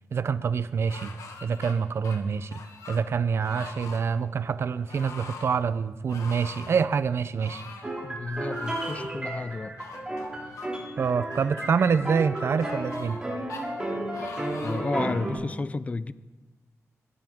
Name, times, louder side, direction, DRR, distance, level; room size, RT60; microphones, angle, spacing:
voice 1, 0.1-1.1 1.4-2.6 2.9-7.6 11.0-13.2, right 6 dB, 50° right, 14 dB, 0.5 m, -26 dB
sound 1, 0.9-1.7 2.0-3.0 3.4-4.0 4.9-5.5 6.1-6.8 7.4-7.9 8.5-9.1 9.8-10.7 11.3-11.7 12.4-13.2 13.5-13.7 14.1-14.9 15.5-15.6, left 4 dB, 80° left, 1.7 m, -43 dB
sound 2, 7.8-15.3, right 1 dB, 15° right, 2.5 m, -33 dB
voice 2, 8.0-9.8 14.2-16.1, left 3 dB, 25° left, 16 dB, 0.4 m, -32 dB
20.5 x 12.5 x 3.6 m, 1.2 s
wide cardioid pair, 155°, 6 cm